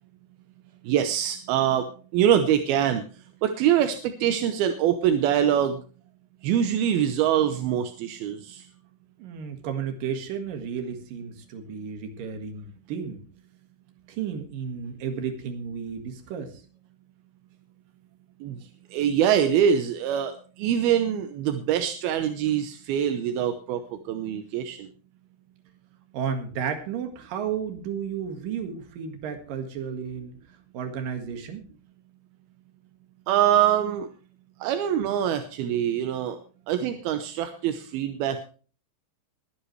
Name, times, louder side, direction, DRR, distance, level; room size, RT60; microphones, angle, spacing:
voice 1, 0.9-1.9 2.1-3.0 3.4-5.8 6.4-8.6 18.4-18.6 18.9-20.3 20.6-23.8 24.1-24.9 33.3-34.1 34.6-36.4 36.7-38.4, right 9 dB, 75° right, 8 dB, 2.4 m, -24 dB
voice 2, 9.2-13.2 14.1-16.6 26.1-30.4 30.7-31.7 36.8-36.9, right 7 dB, 55° right, 6 dB, 3.1 m, -33 dB
21.5 x 9.9 x 3.2 m, 0.39 s
omnidirectional pair, 5.2 m